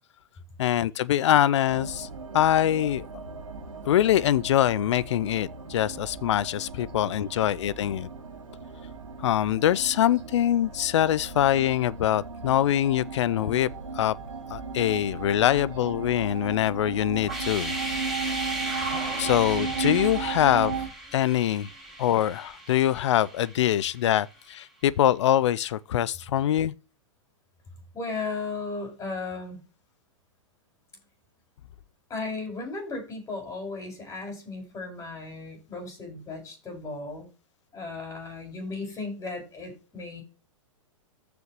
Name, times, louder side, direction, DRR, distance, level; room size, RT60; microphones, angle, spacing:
voice 1, 0.6-2.1 2.3-3.1 3.9-8.1 9.2-14.1 14.5-17.8 19.2-20.8 21.1-21.7 22.0-26.7, left 11 dB, 60° left, 0.6 m, -24 dB
sound 1, 1.7-20.9, right 5 dB, 80° right, 2.3 m, -36 dB
sound 2, 17.3-24.1, right 1 dB, ahead, 5.2 m, -36 dB
voice 2, 27.9-29.6 32.1-37.3 37.7-40.2, left 3 dB, 20° left, 5.4 m, -35 dB
14.5 x 5.1 x 3.1 m
hypercardioid pair, 110°, 17 cm